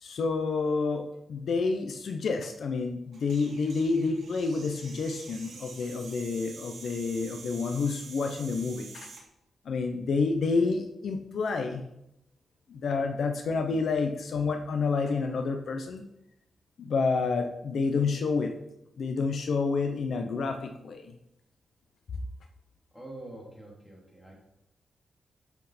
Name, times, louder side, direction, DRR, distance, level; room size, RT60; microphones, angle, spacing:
voice 1, 0.0-9.1 9.6-11.8 12.7-16.0 16.8-18.5 19.0-21.1, left 4 dB, 60° left, 5 dB, 0.8 m, -29 dB
sound 1, 3.1-9.2, right 4 dB, 60° right, 2.7 m, -47 dB
voice 2, 22.9-24.3, right 1 dB, 10° left, -3 dB, 3.2 m, -45 dB
11.5 x 6.4 x 4.4 m, 0.84 s
wide cardioid pair, 155°, 0 cm